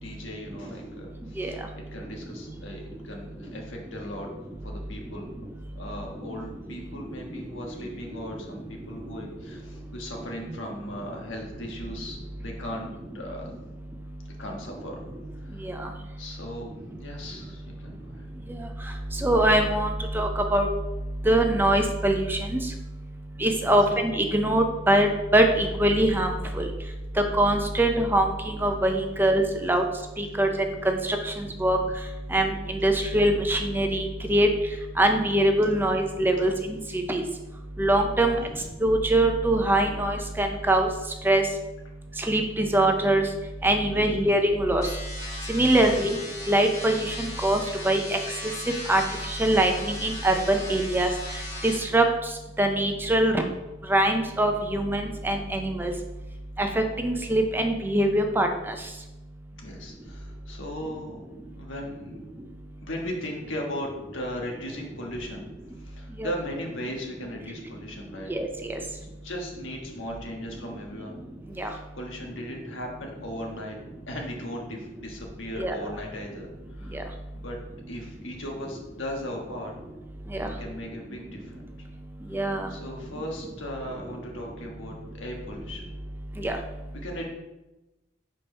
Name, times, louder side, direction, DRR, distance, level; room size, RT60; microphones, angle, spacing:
voice 1, 0.0-4.3 4.6-5.3 5.7-13.5 14.4-15.0 15.4-15.8 16.2-16.7 17.0-18.3 23.6-23.8 38.2-38.6 43.9-44.3 45.7-46.0 59.6-61.2 61.5-62.2 62.8-65.5 65.8-68.3 68.8-68.9 69.2-71.2 71.6-73.8 74.1-76.5 76.8-77.6 77.9-79.7 80.4-81.6 82.3-82.4 82.7-85.9 87.0-87.2, left 1 dB, 85° left, 0 dB, 1.4 m, -38 dB
voice 2, 19.2-19.9 20.1-20.7 21.3-22.4 23.4-25.1 25.3-26.3 27.4-28.2 28.6-29.8 30.2-30.5 30.9-31.2 31.6-31.8 32.3-34.5 35.0-36.5 37.1-37.2 37.8-38.4 38.8-40.9 41.2-41.4 42.3-43.2 43.6-44.8 45.5-46.2 46.5-47.1 47.4-47.6 47.8-48.0 48.9-49.0 49.4-51.1 51.6-52.0 52.6-53.4 53.9-55.9 56.6-56.7 57.0-58.5 66.2-66.3 68.3-68.5 71.6-71.7 75.6-75.7 80.4-80.5 82.3-82.7 86.4-86.6, right 1 dB, 10° right, 4 dB, 0.5 m, -22 dB
sound 1, 44.8-51.8, left 1 dB, 20° left, 1.2 m, -38 dB
5.1 x 4.3 x 5.4 m, 1.0 s
head